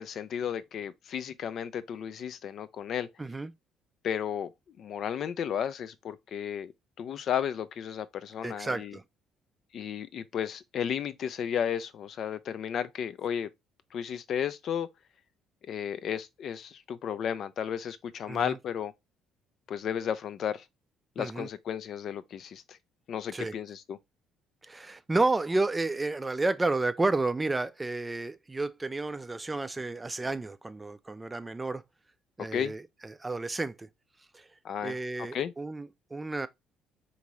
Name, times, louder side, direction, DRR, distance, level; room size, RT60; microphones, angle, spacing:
voice 1, 0.0-3.1 4.0-4.5 4.8-6.7 7.0-9.0 9.7-13.5 13.9-14.9 15.7-18.9 19.7-20.6 21.2-22.8 23.1-24.0 32.5-32.7 34.6-35.0 35.3-35.5, left 8 dB, 55° left, 0.3 m, -33 dB
voice 2, 3.2-3.5 8.4-9.0 18.3-18.6 21.2-21.5 23.3-23.6 24.6-31.8 32.4-33.9 34.3-34.5 34.8-36.5, right 2 dB, 20° right, 0.4 m, -31 dB
3.8 x 2.6 x 3.0 m
hypercardioid pair, 55°, 0 cm